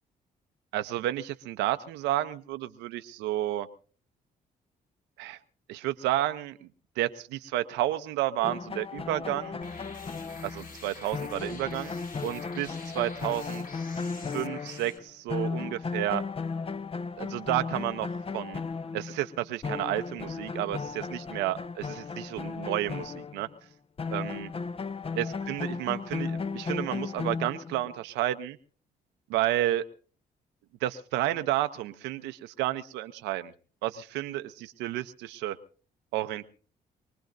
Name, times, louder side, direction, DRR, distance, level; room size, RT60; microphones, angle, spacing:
voice 1, 0.7-3.7 5.2-5.4 5.7-6.7 7.0-9.6 10.4-11.9 12.2-13.6 14.3-16.2 17.2-18.6 18.9-23.5 24.1-24.5 25.2-28.6 29.3-29.8 30.8-33.5 33.8-35.6 36.1-36.5, right 14 dB, 85° right, 11 dB, 0.7 m, -31 dB
sound 1, 8.4-15.0 15.3-23.5 24.0-27.9, left 4 dB, 35° left, 0.7 m, -35 dB
sound 2, 9.6-15.0, left 3 dB, 50° left, 2.0 m, -47 dB
24.0 x 19.5 x 2.6 m, 0.40 s
supercardioid pair, 55°, 18 cm